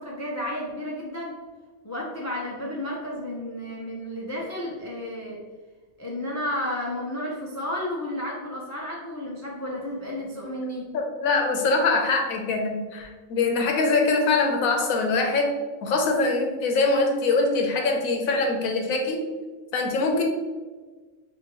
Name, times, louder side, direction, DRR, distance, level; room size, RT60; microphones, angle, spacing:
voice 1, 0.0-1.4 1.8-5.4 6.0-10.9, left 1 dB, 25° left, -3 dB, 0.3 m, -32 dB
voice 2, 10.9-19.2 19.7-20.2, left 3 dB, 90° left, 3 dB, 1.2 m, -23 dB
5.8 x 2.7 x 2.9 m, 1.4 s
omnidirectional pair, 1.4 m